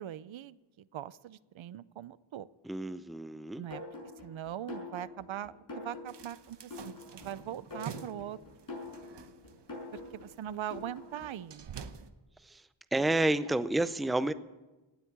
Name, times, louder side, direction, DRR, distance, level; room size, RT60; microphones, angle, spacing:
voice 1, 0.0-2.5 3.6-3.8 4.2-8.4 9.9-11.8, right 11 dB, 80° right, 18 dB, 0.6 m, -41 dB
voice 2, 2.6-3.6 12.4-12.6 12.9-14.3, right 2 dB, ahead, 14 dB, 0.5 m, -30 dB
sound 1, 3.7-11.5, left 3 dB, 45° left, 6.2 m, -46 dB
sound 2, 6.1-12.1, right 7 dB, 60° right, 1.0 m, -49 dB
18.5 x 8.3 x 8.7 m, 1.1 s
wide cardioid pair, 110°, 47 cm